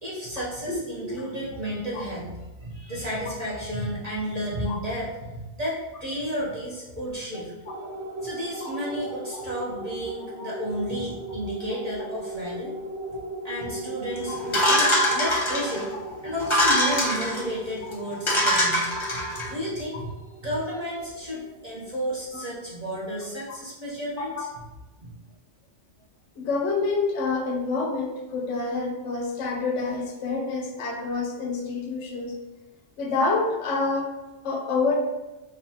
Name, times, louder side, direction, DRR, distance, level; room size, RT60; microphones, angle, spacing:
voice 1, 0.0-7.5 8.2-12.7 13.4-15.9 16.2-24.5 25.0-25.1, equal, 35° right, -7 dB, 0.8 m, -32 dB
voice 2, 0.7-1.3 4.7-4.8 10.4-10.5 14.2-14.4 22.3-22.4 24.2-24.3 26.4-32.4 33.0-34.1 34.4-35.0, left 3 dB, 85° left, 1 dB, 1.0 m, -27 dB
sound 1, 7.7-22.4, right 1 dB, 65° right, 0.9 m, -38 dB
sound 2, 14.5-15.8 16.4-17.4 17.9-18.0 18.3-19.5, equal, 30° left, 0.8 m, -22 dB
5.0 x 2.3 x 2.8 m, 1.1 s
omnidirectional pair, 1.2 m